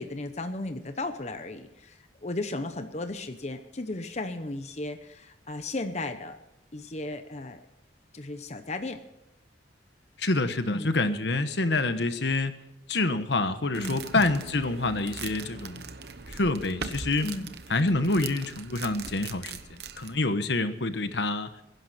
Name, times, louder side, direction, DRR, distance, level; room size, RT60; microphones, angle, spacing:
voice 1, 0.0-6.4 6.7-7.6 8.1-9.0 10.6-10.9 13.8-14.0 17.2-17.5, left 2 dB, 40° left, 8 dB, 0.9 m, -35 dB
voice 2, 10.2-12.6 12.9-15.9 16.3-17.3 17.7-19.6 20.0-21.5, left 2 dB, 70° left, 10 dB, 1.2 m, -27 dB
sound 1, 13.7-20.2, right 5 dB, 60° right, 1.1 m, -41 dB
22.0 x 11.0 x 4.3 m, 0.95 s
head